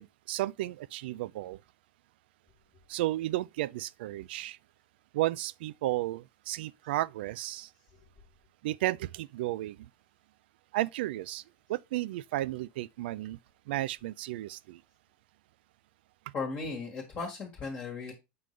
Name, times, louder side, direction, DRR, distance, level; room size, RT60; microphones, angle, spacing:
voice 1, 0.0-1.6 2.9-4.6 5.1-7.7 8.6-9.8 10.7-11.4 11.7-13.4 13.7-14.8, right 16 dB, 65° right, 0.3 m, -33 dB
voice 2, 16.3-18.1, left 4 dB, 20° left, 1.4 m, -36 dB
7.6 x 5.4 x 3.1 m
supercardioid pair, 175°, 6 cm